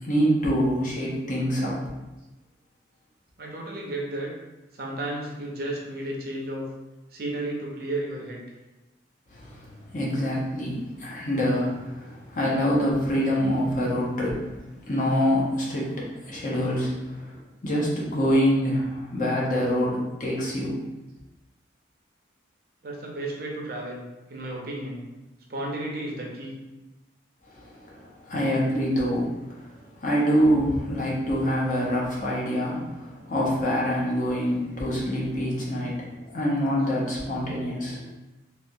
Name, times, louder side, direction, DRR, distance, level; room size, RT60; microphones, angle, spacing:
voice 1, 0.0-1.8 9.3-9.7 9.9-14.5 14.9-17.4 17.6-20.8 27.6-38.0, equal, 45° left, -4 dB, 0.7 m, -25 dB
voice 2, 3.4-4.3 4.8-6.7 7.1-8.4 22.8-24.0 24.3-25.1 25.5-26.6, right 1 dB, 50° right, -1 dB, 0.6 m, -33 dB
3.3 x 2.4 x 2.6 m, 1.0 s
head